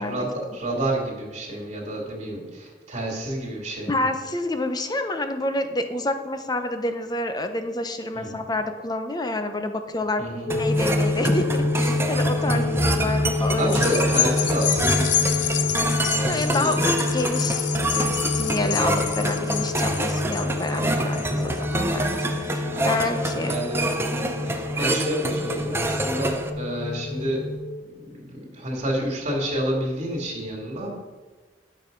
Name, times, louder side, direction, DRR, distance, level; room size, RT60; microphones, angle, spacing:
voice 1, 0.0-4.1 8.1-8.4 10.2-10.6 12.4-12.9 13.6-15.3 16.2-16.9 18.5-18.8 20.7-21.4 22.2-22.3 22.7-23.1 23.4-23.9 24.5-27.5 27.8-31.0, right 1 dB, 40° right, -1 dB, 2.5 m, -30 dB
voice 2, 3.9-10.2 10.5-13.8 16.3-17.7 17.9-23.6, left 2 dB, 20° left, 7 dB, 0.8 m, -28 dB
sound 1, 10.5-27.6, left 2 dB, 50° left, 3.0 m, -27 dB
sound 2, 10.5-26.5, right 1 dB, 15° right, 0.7 m, -27 dB
sound 3, 13.6-22.3 22.8-22.9, left 11 dB, 75° left, 0.6 m, -28 dB
11.0 x 6.5 x 5.3 m, 1.3 s
head